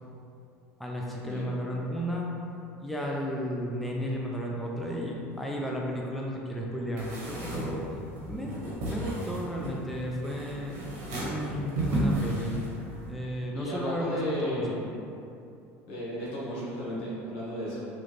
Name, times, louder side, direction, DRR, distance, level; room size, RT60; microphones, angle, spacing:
voice 1, 0.8-2.3 2.8-7.8 8.3-10.8 11.2-12.6 13.0-14.8, equal, ahead, -2 dB, 0.4 m, -33 dB
sound 1, 7.0-13.1, right 1 dB, 70° right, 0.9 m, -33 dB
voice 2, 13.5-14.9 15.9-17.8, equal, 75° left, -7 dB, 1.1 m, -34 dB
3.1 x 2.4 x 3.1 m, 2.6 s
supercardioid pair, 95°, 7 cm